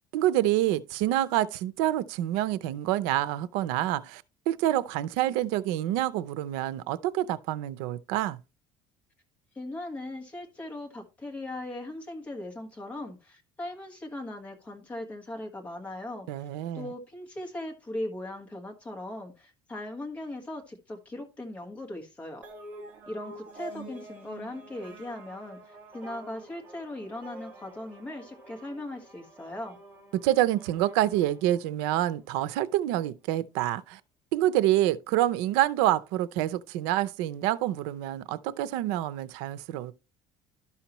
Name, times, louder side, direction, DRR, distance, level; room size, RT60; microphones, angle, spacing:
voice 1, 0.1-8.4 16.3-16.9 30.2-34.0 34.3-39.9, right 14 dB, 90° right, 0.5 m, -27 dB
voice 2, 9.5-16.5 16.7-22.4 23.1-29.8, left 1 dB, 15° left, 1.6 m, -39 dB
sound 1, 22.4-32.2, right 2 dB, 15° right, 1.9 m, -48 dB
12.0 x 5.7 x 3.0 m
cardioid pair, 170°, 10 cm